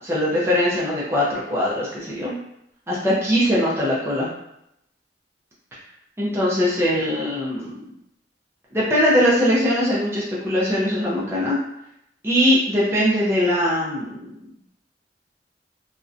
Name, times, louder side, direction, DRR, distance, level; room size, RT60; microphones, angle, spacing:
voice 1, 0.0-2.3 2.9-4.3 6.2-7.8 8.7-11.6 12.2-14.3, equal, 15° right, -6 dB, 0.4 m, -21 dB
2.5 x 2.1 x 2.4 m, 0.79 s
head